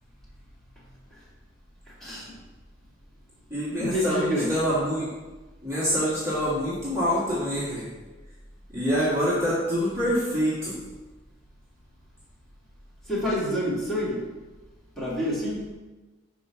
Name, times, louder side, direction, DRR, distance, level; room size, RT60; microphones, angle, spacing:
voice 1, 2.0-2.3 3.8-4.5 13.1-14.2 15.0-15.7, equal, ahead, -9 dB, 2.2 m, -27 dB
voice 2, 3.5-5.1 5.6-7.9 8.7-10.8, equal, 15° right, -10 dB, 1.7 m, -26 dB
5.4 x 4.7 x 5.7 m, 1.2 s
head